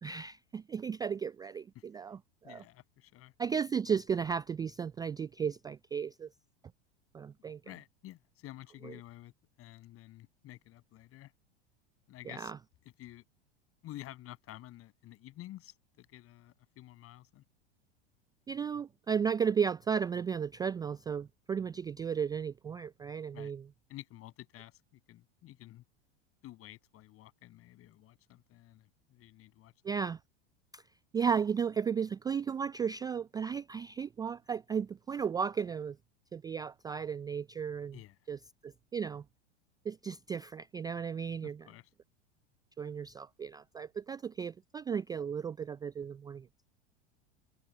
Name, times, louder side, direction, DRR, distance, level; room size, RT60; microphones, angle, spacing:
voice 1, 0.0-2.6 3.4-6.3 7.1-7.6 8.8-8.9 12.3-12.6 18.5-23.6 29.8-30.2 30.7-30.8 31.1-36.0 36.3-38.0 38.3-39.2 39.9-41.7 42.8-46.5, right 7 dB, 15° right, 0.3 m, -34 dB
voice 2, 2.4-3.3 7.6-9.3 9.6-11.3 12.1-12.5 13.0-13.2 13.8-17.4 23.3-23.5 23.9-25.8 26.4-29.7 37.9-38.2 41.4-41.9, left 15 dB, 45° left, 6.9 m, -51 dB
hypercardioid pair, 90°, 32 cm